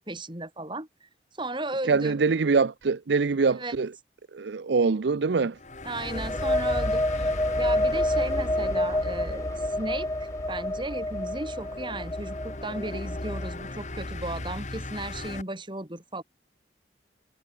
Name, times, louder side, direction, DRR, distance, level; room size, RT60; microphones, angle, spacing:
voice 1, 0.0-2.2 3.5-3.7 5.8-7.3 7.6-16.2, right 2 dB, 25° right, 4.7 m, -35 dB
voice 2, 1.9-3.9 4.3-5.6, right 4 dB, 70° right, 0.5 m, -24 dB
sound 1, 5.6-15.4, left 2 dB, 40° left, 2.0 m, -37 dB
sound 2, 6.0-13.6, left 1 dB, 15° left, 2.3 m, -28 dB
head